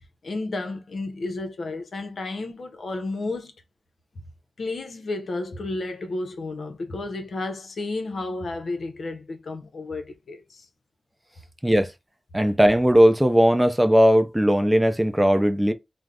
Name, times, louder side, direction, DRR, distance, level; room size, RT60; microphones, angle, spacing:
voice 1, 0.2-3.5 4.6-10.7, left 2 dB, 70° left, 0.6 m, -32 dB
voice 2, 12.3-15.7, equal, 10° right, 0.5 m, -18 dB
3.3 x 2.0 x 2.4 m
cardioid pair, 50°, 0 cm